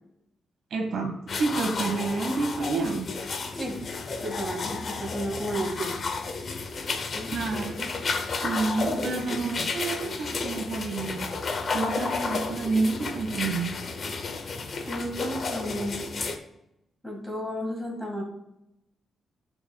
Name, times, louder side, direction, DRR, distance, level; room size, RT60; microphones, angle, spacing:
voice 1, 0.7-3.1 6.8-7.9 8.4-11.3 11.7-13.7, right 3 dB, 65° right, 2 dB, 1.8 m, -29 dB
sound 1, 1.3-16.4, left 4 dB, 40° left, 0.8 m, -32 dB
voice 2, 4.2-5.9 7.1-7.3 14.8-16.1 17.0-18.2, equal, 5° left, -1 dB, 2.0 m, -32 dB
14.5 x 6.1 x 2.4 m, 0.87 s
wide cardioid pair, 170°, 0 cm